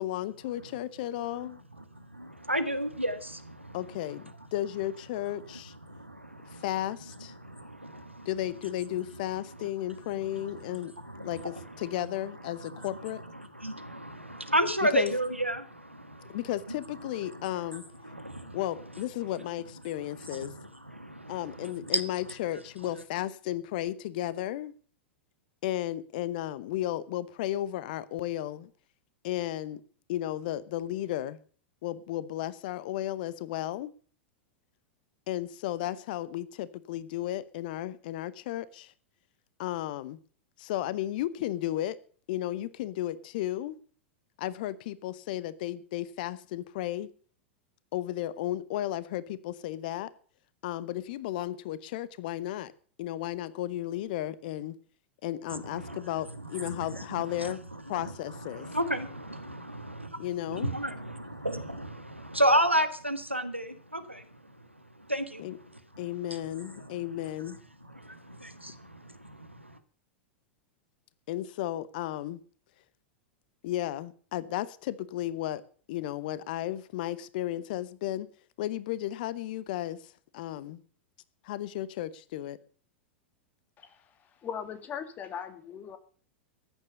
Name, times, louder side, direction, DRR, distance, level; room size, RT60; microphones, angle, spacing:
voice 1, 0.0-1.6 3.7-5.7 6.5-7.3 8.2-10.9 11.2-13.2 14.8-15.1 16.3-17.8 18.5-20.5 21.3-24.7 25.6-28.7 29.2-29.8 30.1-31.4 31.8-33.9 35.3-38.9 39.6-40.2 40.6-42.0 42.3-43.8 44.4-47.1 47.9-50.1 50.6-52.7 53.0-54.8 55.2-57.6 57.9-58.7 60.2-60.8 65.4-65.6 66.0-67.6 71.3-72.4 73.6-75.6 75.9-78.3 78.6-80.8 81.4-82.6, left 13 dB, 50° left, 1.0 m, -34 dB
voice 2, 2.0-3.8 5.9-6.6 7.4-8.3 10.3-10.8 11.0-11.4 12.7-12.9 13.5-16.4 18.0-18.6 20.3-22.0 55.5-56.0 56.5-57.5 57.9-58.0 58.5-64.2 65.1-65.4 66.8-66.9 67.9-69.8, equal, 90° right, 1.6 m, -32 dB
voice 3, 83.8-86.0, left 7 dB, 25° left, 2.2 m, -40 dB
14.0 x 10.0 x 6.8 m
figure-of-eight pair, 95°, 6 cm